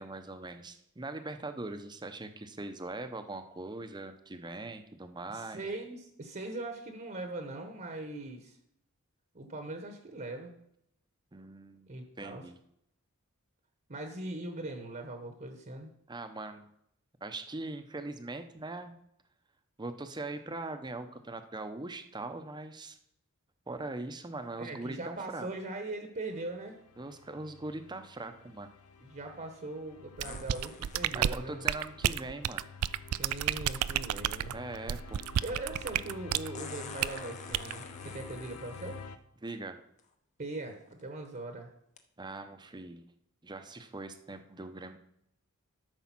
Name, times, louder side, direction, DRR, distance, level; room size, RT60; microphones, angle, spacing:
voice 1, 0.0-5.6 11.3-11.9 12.2-12.6 16.1-16.7 17.2-19.0 19.8-23.0 23.7-25.5 27.0-28.7 31.1-32.6 34.5-35.3 39.4-39.8 42.2-43.1 43.4-45.0, right 2 dB, 20° right, 8 dB, 0.7 m, -41 dB
voice 2, 5.3-8.6 9.3-10.5 11.9-12.4 13.9-15.9 24.6-26.8 29.0-31.7 33.2-34.6 35.4-39.0 40.4-41.7, right 2 dB, 40° right, 5 dB, 1.1 m, -40 dB
sound 1, 26.3-39.2, left 5 dB, 85° left, 0.7 m, -50 dB
sound 2, 30.2-31.1 33.1-33.2 36.5-39.0 40.0-40.1 40.7-41.0 42.0-42.1, left 5 dB, 35° left, 0.9 m, -47 dB
sound 3, 30.2-36.5 37.0-37.2 37.5-37.7, right 11 dB, 80° right, 0.4 m, -31 dB
12.5 x 4.8 x 6.0 m, 0.75 s
head